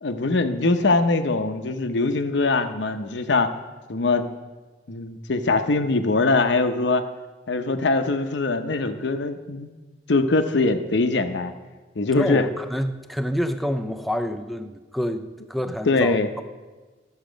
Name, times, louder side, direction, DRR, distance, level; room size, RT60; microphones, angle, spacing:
voice 1, 0.0-3.5 3.9-4.3 4.9-7.0 7.5-9.7 10.1-11.5 12.0-12.5 15.9-16.3, left 3 dB, 70° left, 8 dB, 0.7 m, -22 dB
voice 2, 12.1-16.4, equal, ahead, 8 dB, 0.4 m, -28 dB
12.0 x 7.3 x 5.1 m, 1.3 s
head